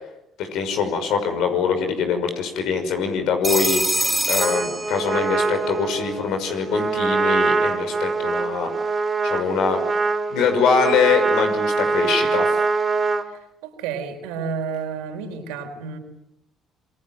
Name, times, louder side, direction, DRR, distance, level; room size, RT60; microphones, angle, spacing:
voice 1, 0.4-8.7 9.2-9.8 10.3-12.5, left 6 dB, 75° left, 7 dB, 5.9 m, -23 dB
Telephone, 3.4-5.5, right 1 dB, 15° right, 4.9 m, -24 dB
Trumpet, 4.4-13.3, right 4 dB, 35° right, 4.2 m, -23 dB
voice 2, 13.6-16.0, right 6 dB, 80° right, 5 dB, 4.5 m, -30 dB
27.5 x 23.0 x 9.2 m, 0.86 s
hypercardioid pair, 60°, 0 cm